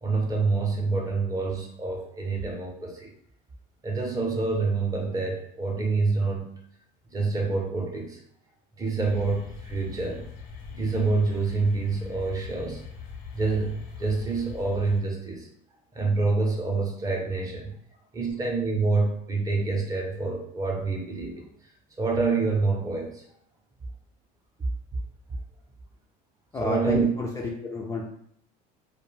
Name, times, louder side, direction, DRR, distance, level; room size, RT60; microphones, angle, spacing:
voice 1, 0.0-3.1 3.8-6.5 7.1-8.2 8.8-10.2 10.7-12.8 13.3-15.5 15.9-17.7 18.1-21.5 22.0-23.2 26.6-27.1, right 3 dB, 20° right, 1 dB, 0.6 m, -27 dB
sound 1, 9.0-15.0, left 6 dB, 90° left, 0.8 m, -42 dB
voice 2, 26.5-27.3 27.6-28.0, left 2 dB, 15° left, -2 dB, 0.3 m, -30 dB
2.3 x 2.2 x 3.1 m, 0.67 s
supercardioid pair, 115°, 18 cm